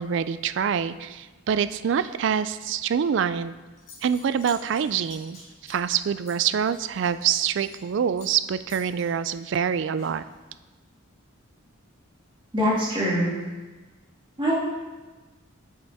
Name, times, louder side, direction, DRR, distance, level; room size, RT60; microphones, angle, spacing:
voice 1, 0.0-3.5 4.0-10.2, right 7 dB, 60° right, 14 dB, 0.3 m, -25 dB
Zipper (clothing) / Coin (dropping), 3.8-7.9 8.2-8.4 8.7-10.5, left 3 dB, 35° left, 2.6 m, -49 dB
voice 2, 12.5-13.3 14.4-14.5, equal, 25° right, -7 dB, 2.1 m, -23 dB
8.6 x 6.9 x 3.5 m, 1.2 s
head